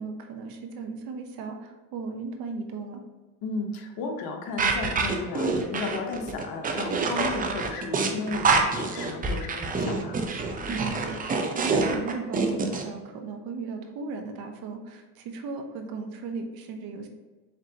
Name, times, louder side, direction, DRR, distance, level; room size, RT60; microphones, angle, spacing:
voice 1, 0.0-3.0 10.7-17.1, right 4 dB, 60° right, 5 dB, 0.8 m, -36 dB
voice 2, 3.4-10.2, left 3 dB, 60° left, 3 dB, 0.9 m, -34 dB
sound 1, 4.6-12.8, right 4 dB, 20° right, 0.5 m, -26 dB
4.5 x 3.7 x 2.8 m, 1.3 s
supercardioid pair, 105°, 40 cm